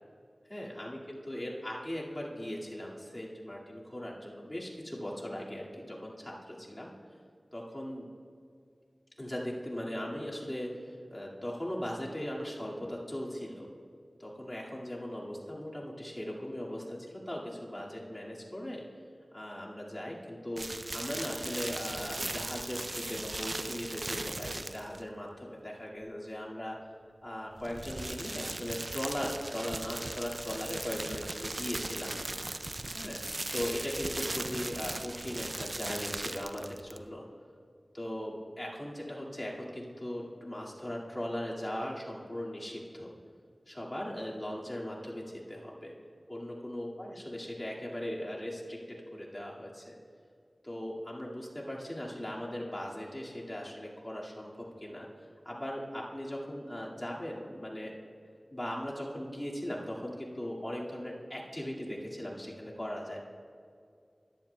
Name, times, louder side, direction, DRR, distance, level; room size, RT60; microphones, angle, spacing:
voice 1, 0.5-6.9 7.5-8.1 9.2-13.7 14.2-18.8 19.3-20.6 20.9-26.8 27.2-32.1 32.9-33.2 33.5-37.2 37.9-43.1 43.7-45.9 46.3-50.0 50.6-55.1 55.4-57.9 58.5-63.2, left 1 dB, 20° left, -5 dB, 2.0 m, -39 dB
sound 1, 20.6-25.1 27.5-37.1, right 2 dB, 45° right, 0.4 m, -38 dB
14.5 x 10.5 x 2.2 m, 2.3 s
wide cardioid pair, 50°, 0 cm